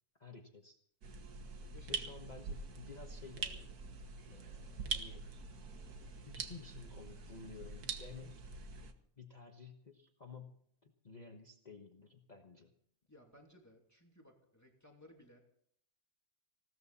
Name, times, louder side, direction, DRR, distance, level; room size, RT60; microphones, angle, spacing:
voice 1, 0.2-0.8 1.9-3.7 4.3-5.3 6.3-8.5 9.2-12.7, left 4 dB, 30° left, 3 dB, 1.3 m, -53 dB
sound 1, 1.0-8.9, right 4 dB, 90° right, 1.9 m, -44 dB
voice 2, 1.7-2.1 13.1-15.4, left 1 dB, 10° left, 1 dB, 2.6 m, -60 dB
20.0 x 17.0 x 4.2 m, 0.64 s
omnidirectional pair, 1.6 m